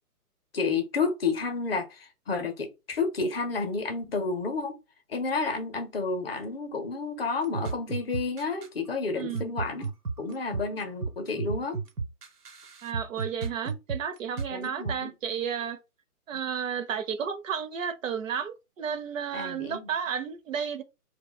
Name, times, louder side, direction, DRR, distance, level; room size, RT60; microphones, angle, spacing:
voice 1, 0.5-4.8 5.1-9.9 10.2-11.8 14.5-15.1 19.3-19.9, left 4 dB, 40° left, 0.6 m, -30 dB
sound 1, 7.4-8.7 9.3-14.9, right 4 dB, 85° right, 1.0 m, -33 dB
voice 2, 9.2-9.5 12.8-15.8 16.3-20.8, right 7 dB, 60° right, 0.5 m, -32 dB
2.3 x 2.1 x 3.7 m
hypercardioid pair, 145°, 46 cm